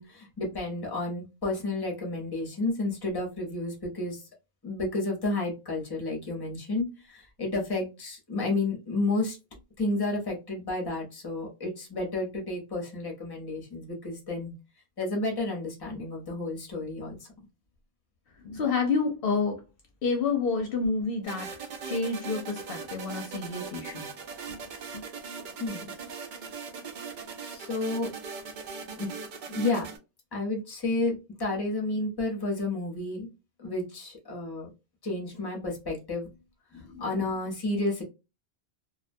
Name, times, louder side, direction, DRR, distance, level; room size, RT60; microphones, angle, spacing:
voice 1, 0.0-4.2 4.6-9.4 9.8-14.5 15.0-17.2 25.6-25.9 27.4-28.1 29.0-29.1 29.5-29.9 30.3-33.3 33.6-34.7 35.0-36.3 36.7-38.0, left 2 dB, 25° left, 0.8 m, -31 dB
voice 2, 18.4-19.6 20.0-24.1 24.5-24.6 24.9-25.0, left 4 dB, 65° left, 0.7 m, -29 dB
sound 1, 21.2-30.0, right 5 dB, 60° right, 0.6 m, -40 dB
2.3 x 2.1 x 2.5 m
omnidirectional pair, 1.1 m